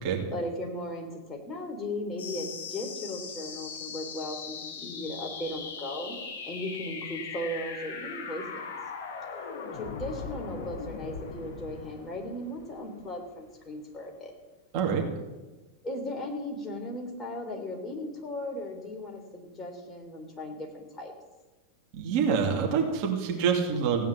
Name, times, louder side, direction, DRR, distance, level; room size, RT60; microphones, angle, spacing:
voice 1, 0.3-6.2 6.5-8.7 9.7-14.3 15.8-21.1, left 1 dB, 20° left, 1 dB, 3.4 m, -37 dB
sound 1, 2.2-13.2, left 5 dB, 55° left, 4.2 m, -40 dB
voice 2, 21.9-24.1, right 6 dB, 45° right, 1 dB, 2.5 m, -26 dB
16.5 x 9.2 x 7.4 m, 1.2 s
figure-of-eight pair, 90°, 0 cm